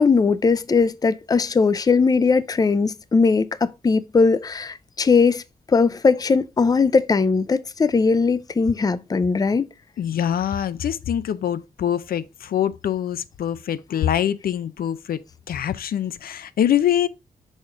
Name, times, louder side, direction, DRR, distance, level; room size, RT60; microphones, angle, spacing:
voice 1, 0.0-5.4 5.7-9.7, left 4 dB, 25° left, 0.4 m, -19 dB
voice 2, 10.0-17.1, left 10 dB, 80° left, 0.5 m, -24 dB
6.4 x 4.9 x 3.7 m
wide cardioid pair, 105°, 15 cm